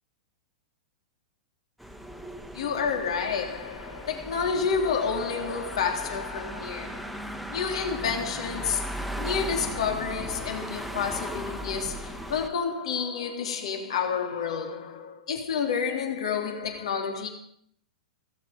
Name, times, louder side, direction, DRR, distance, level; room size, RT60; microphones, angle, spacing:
sound 1, 1.8-12.5, right 1 dB, ahead, 1.5 m, -37 dB
voice 1, 2.5-17.3, left 6 dB, 65° left, 3.3 m, -30 dB
17.0 x 14.5 x 5.2 m
figure-of-eight pair, 100°, 3 cm